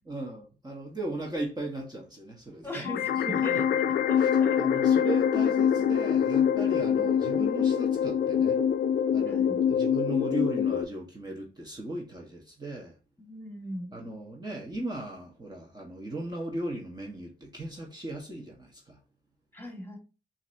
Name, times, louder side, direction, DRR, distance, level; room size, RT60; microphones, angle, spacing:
voice 1, 0.1-2.9 3.2-3.6 4.2-4.3 4.6-8.6 9.1-13.0 13.9-19.0, right 2 dB, 25° right, 1.4 m, -37 dB
voice 2, 2.6-4.9 9.3-9.7 13.2-13.9 19.5-20.0, equal, 10° left, 2.0 m, -40 dB
sound 1, 2.8-10.8, left 8 dB, 70° left, 0.5 m, -25 dB
5.8 x 2.9 x 2.8 m
supercardioid pair, 55°, 17 cm